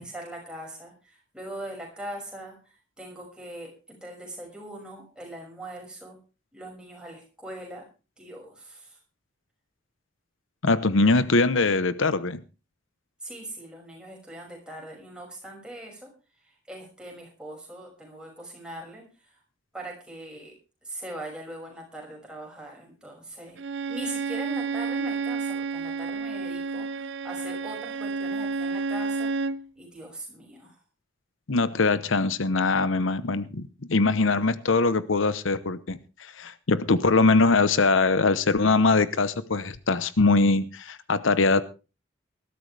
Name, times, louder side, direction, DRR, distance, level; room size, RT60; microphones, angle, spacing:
voice 1, 0.0-2.6 3.0-6.2 6.5-7.8 8.2-9.0 13.2-16.1 16.7-19.0 19.7-20.5 20.8-23.6 23.9-29.3 29.8-30.7, right 1 dB, 5° right, 5.9 m, -41 dB
voice 2, 10.6-12.4 31.5-41.6, left 3 dB, 85° left, 0.9 m, -22 dB
Bowed string instrument, 23.6-29.6, right 4 dB, 65° right, 0.7 m, -30 dB
19.5 x 13.5 x 3.3 m
head